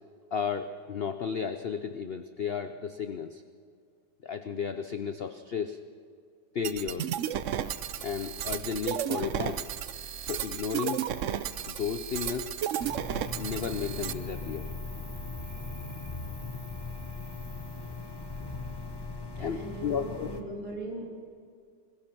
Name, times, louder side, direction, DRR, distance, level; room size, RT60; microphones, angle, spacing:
voice 1, 0.3-3.4 4.2-5.8 6.5-7.1 8.0-9.6 10.2-11.1 11.7-12.5 13.3-14.7 19.4-20.3, left 7 dB, 75° left, 9 dB, 0.5 m, -33 dB
sound 1, 6.6-14.1, right 10 dB, 65° right, 0.7 m, -33 dB
Cricket, 7.2-19.2, equal, 10° right, 4.5 m, -51 dB
sound 2, 12.8-20.4, left 3 dB, 15° left, 1.0 m, -39 dB
voice 2, 19.4-21.0, right 1 dB, 45° right, -2 dB, 3.9 m, -39 dB
21.0 x 21.0 x 6.0 m, 2.2 s
omnidirectional pair, 1.9 m